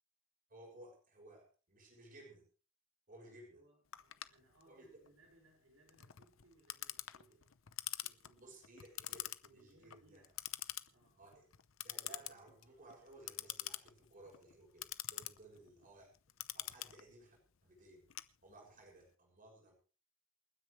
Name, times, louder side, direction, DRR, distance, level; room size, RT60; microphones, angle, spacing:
voice 1, 0.5-2.4 3.1-3.6 4.7-5.0 8.4-10.2 11.2-11.5 11.8-16.1 16.5-18.0 18.4-19.7, right 2 dB, 40° right, -1 dB, 6.7 m, -58 dB
voice 2, 3.1-7.6 8.0-8.6 9.4-10.3 10.9-11.3 15.5-15.7, right 2 dB, 80° right, 0 dB, 5.7 m, -68 dB
Clock, 3.9-18.9, left 14 dB, 70° left, 0.8 m, -47 dB
28.5 x 9.9 x 3.3 m, 0.35 s
head